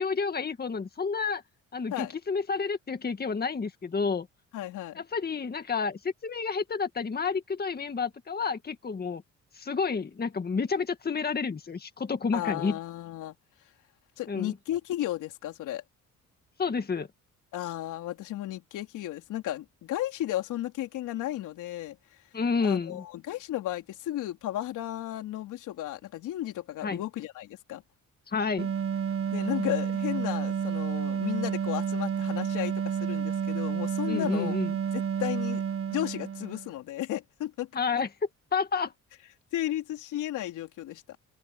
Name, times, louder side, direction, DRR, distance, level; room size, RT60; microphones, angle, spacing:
voice 1, 0.0-1.4 1.7-4.3 4.9-9.2 9.5-12.8 14.3-14.5 16.6-17.1 22.3-23.0 26.8-27.0 28.3-28.7 34.1-34.7 37.7-38.1 38.5-38.9, left 5 dB, 30° left, 1.9 m, -30 dB
voice 2, 4.5-5.0 12.3-13.3 14.2-15.8 17.5-22.0 22.6-27.8 29.3-34.6 34.9-35.6 35.9-37.7 39.5-41.0, left 13 dB, 85° left, 3.8 m, -34 dB
sound 1, 28.6-36.7, right 7 dB, 45° right, 1.4 m, -30 dB
open air
cardioid pair, 90°, 30 cm